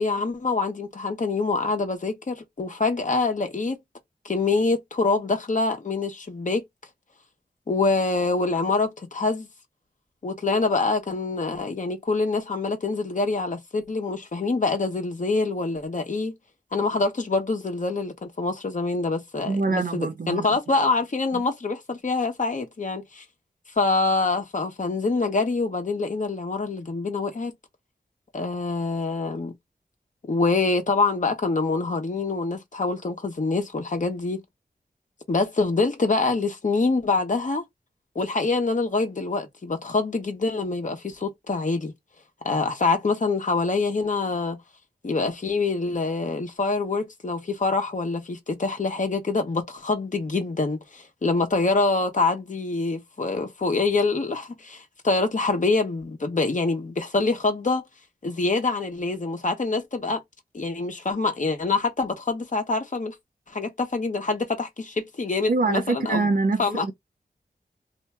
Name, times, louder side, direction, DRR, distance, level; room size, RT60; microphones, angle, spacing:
voice 1, 0.0-3.8 4.2-6.6 7.7-9.5 10.2-16.3 16.7-23.2 23.8-27.5 28.3-29.5 30.3-34.4 35.3-37.6 38.1-41.9 42.4-44.6 45.0-57.8 58.2-60.2 60.5-63.1 63.5-66.3 66.6-66.8, left 3 dB, 50° left, 1.1 m, -25 dB
voice 2, 19.4-20.6 21.3-21.4 65.5-66.9, right 3 dB, 60° right, 0.7 m, -25 dB
2.8 x 2.4 x 4.2 m
wide cardioid pair, 95°, 16 cm